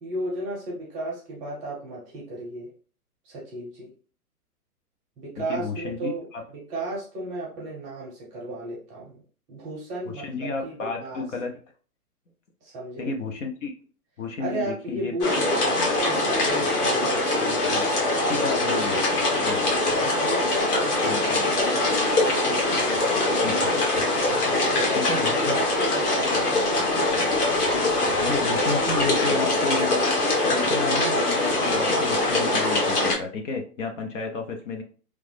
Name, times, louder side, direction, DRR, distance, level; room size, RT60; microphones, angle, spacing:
voice 1, 0.0-2.7 3.2-3.9 5.2-6.3 6.5-9.2 9.5-11.2 12.6-13.1 14.4-17.7 20.0-22.0 24.5-27.0, right 2 dB, 15° right, -4 dB, 0.7 m, -34 dB
voice 2, 5.5-6.4 10.1-11.5 13.0-13.7 14.2-15.1 17.5-17.9 18.3-19.1 19.4-19.7 21.0-21.5 23.4-23.7 25.0-25.6 28.2-30.0 30.5-34.8, left 4 dB, 50° left, 4 dB, 0.7 m, -32 dB
sound 1, 15.2-33.1, left 2 dB, 75° left, 1.3 m, -23 dB
3.1 x 2.0 x 3.2 m, 0.41 s
hypercardioid pair, 140°, 47 cm